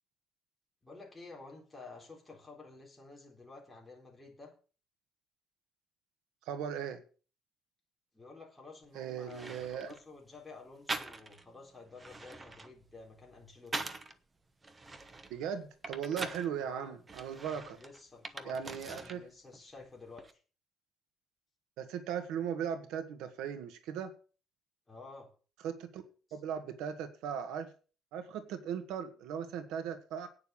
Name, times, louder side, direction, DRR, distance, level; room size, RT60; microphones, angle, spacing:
voice 1, 0.8-4.5 8.1-13.7 16.6-17.0 17.8-20.4 24.9-25.3, left 3 dB, 5° left, -2 dB, 3.9 m, -52 dB
voice 2, 6.5-7.0 8.9-9.9 15.3-17.8 18.4-19.2 21.8-24.1 25.6-26.0 26.3-27.7 28.1-30.3, right 8 dB, 85° right, 8 dB, 1.7 m, -38 dB
sound 1, 8.8-8.9 9.3-10.0 10.9-11.5 11.9-14.2 14.6-16.5 17.1-19.2 19.5-20.3, right 3 dB, 15° right, 0.9 m, -43 dB
9.2 x 6.9 x 8.6 m, 0.38 s
cardioid pair, 165°, 0 cm